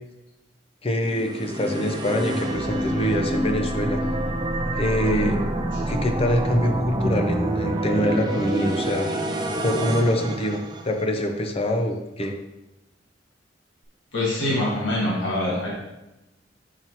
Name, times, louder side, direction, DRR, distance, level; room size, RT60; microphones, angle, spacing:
voice 1, 0.8-4.0 4.8-5.4 5.9-9.1 9.6-12.4, left 1 dB, 30° left, 4 dB, 0.6 m, -25 dB
sound 1, 1.0-11.3, right 1 dB, 25° right, 0.5 m, -27 dB
voice 2, 5.0-5.3 5.7-5.8 14.1-15.8, left 1 dB, 85° left, -4 dB, 1.5 m, -25 dB
5.7 x 5.4 x 3.0 m, 0.95 s
head